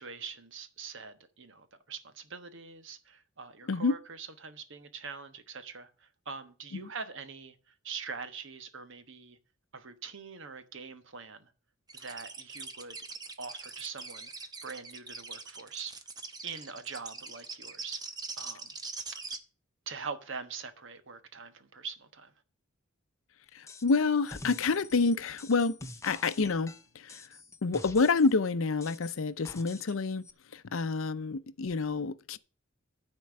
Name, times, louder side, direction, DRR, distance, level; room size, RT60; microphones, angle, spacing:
voice 1, 0.0-9.4 9.7-11.5 11.9-13.1 13.4-14.3 14.6-16.0 16.4-18.0 18.4-18.7 19.1-19.2 19.9-22.3, right 5 dB, 65° right, 1.2 m, -43 dB
sound 1, 11.9-19.4, right 4 dB, 20° right, 0.9 m, -42 dB
voice 2, 23.5-25.8 26.0-27.3 27.6-30.2 30.5-32.4, left 4 dB, 75° left, 0.6 m, -28 dB
sound 2, 23.7-24.0 24.2-28.4 28.8-30.0 30.2-30.3, left 2 dB, 15° left, 0.7 m, -47 dB
13.0 x 4.5 x 7.6 m
head